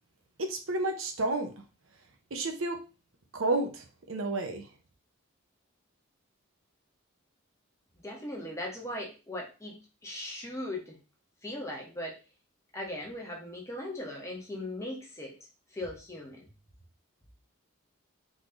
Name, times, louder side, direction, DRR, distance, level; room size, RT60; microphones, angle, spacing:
voice 1, 0.4-1.5 2.3-2.8 3.3-4.7, right 2 dB, 75° right, 5 dB, 0.9 m, -31 dB
voice 2, 8.0-11.0 11.4-12.2 12.7-15.3 15.7-16.5, left 1 dB, 15° left, -1 dB, 1.2 m, -39 dB
4.2 x 3.2 x 3.8 m, 0.31 s
head